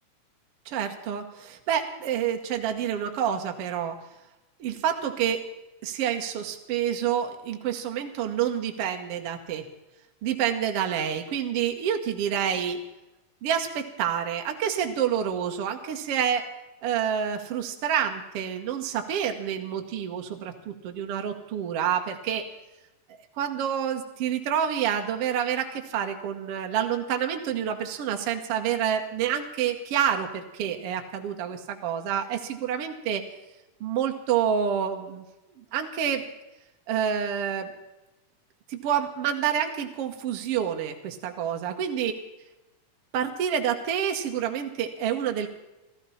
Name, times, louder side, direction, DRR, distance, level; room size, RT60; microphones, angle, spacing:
voice 1, 0.6-4.0 4.6-5.4 5.8-9.7 10.2-12.8 13.4-16.5 16.8-22.4 23.4-33.2 33.8-35.2 35.7-36.3 36.9-37.7 38.7-42.1 43.1-45.5, right 9 dB, 70° right, 4 dB, 1.4 m, -28 dB
15.5 x 14.0 x 5.6 m, 0.99 s
omnidirectional pair, 4.4 m